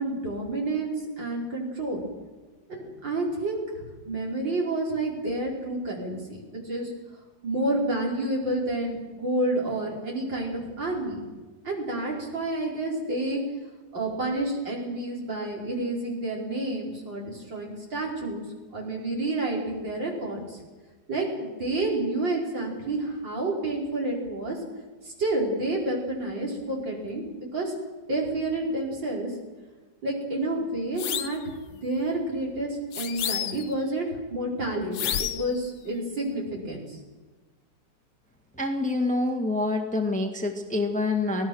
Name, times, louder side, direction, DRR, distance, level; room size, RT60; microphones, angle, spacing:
voice 1, 0.0-2.0 2.7-6.9 7.4-11.2 11.6-13.4 13.9-18.4 18.7-20.6 21.1-24.6 25.0-27.7 28.1-29.3 30.0-31.4 31.7-37.0, right 2 dB, 65° right, -2 dB, 5.8 m, -29 dB
sound 1, 31.0-31.4 32.9-33.8 34.9-35.6, left 10 dB, 75° left, 1.6 m, -30 dB
voice 2, 38.6-41.5, left 2 dB, 5° left, 4 dB, 1.6 m, -26 dB
24.0 x 18.0 x 6.3 m, 1.3 s
omnidirectional pair, 2.1 m